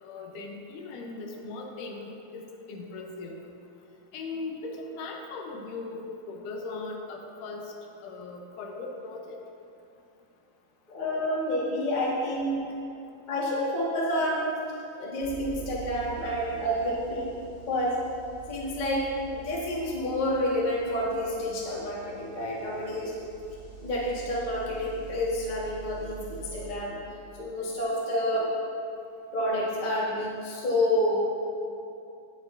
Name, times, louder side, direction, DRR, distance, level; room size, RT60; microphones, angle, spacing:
voice 1, 0.0-3.5 4.1-7.7 8.0-9.4, left 3 dB, 75° left, 1 dB, 2.3 m, -39 dB
voice 2, 10.9-12.7 13.3-14.5 15.0-17.4 17.7-18.0 18.5-23.1 23.8-27.0 27.4-28.5 29.3-31.2, left 1 dB, 50° left, -6 dB, 0.5 m, -29 dB
sound 1, 15.2-26.7, right 9 dB, 40° right, 2.1 m, -46 dB
18.0 x 6.2 x 2.6 m, 2.7 s
omnidirectional pair, 3.8 m